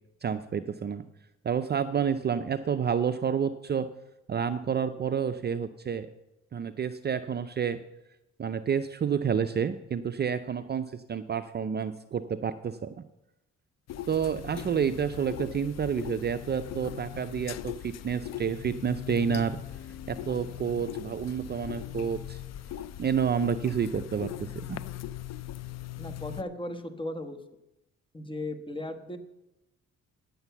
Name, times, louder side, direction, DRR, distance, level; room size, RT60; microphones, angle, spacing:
voice 1, 0.2-1.0 1.4-3.9 4.3-6.1 6.5-7.8 8.4-13.0 14.1-19.6 20.1-22.4 23.0-24.8, right 7 dB, 35° right, 10 dB, 0.5 m, -29 dB
sound 1, 13.9-26.4, left 12 dB, 60° left, 0.5 m, -40 dB
voice 2, 26.0-27.4 28.1-29.2, left 1 dB, 15° left, 8 dB, 1.2 m, -36 dB
9.7 x 7.9 x 7.0 m, 0.90 s
cardioid pair, 90°, 30 cm